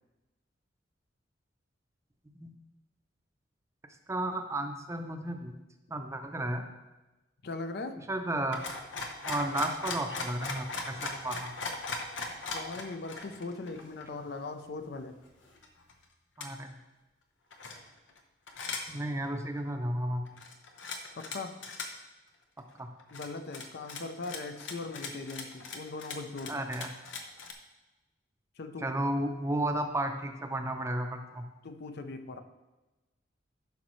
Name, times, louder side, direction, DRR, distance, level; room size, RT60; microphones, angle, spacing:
voice 1, 4.1-5.5 5.9-6.6 8.1-8.6 9.2-11.5 16.4-16.8 18.9-20.4 22.8-22.9 26.5-26.9 28.8-31.4, right 1 dB, 15° right, 5 dB, 0.6 m, -33 dB
voice 2, 7.4-8.0 12.5-15.2 21.2-21.6 23.1-26.6 28.6-28.9 31.6-32.4, left 3 dB, 60° left, 8 dB, 0.5 m, -40 dB
sound 1, 8.5-14.1 14.6-14.7 15.0-15.9 16.4-16.5 17.5-18.2 18.5-18.9 19.2-19.4 20.3-21.4 21.6-21.9 22.6-22.7 23.0-27.5, left 3 dB, 90° left, 0.8 m, -39 dB
11.5 x 5.3 x 3.1 m, 1.1 s
head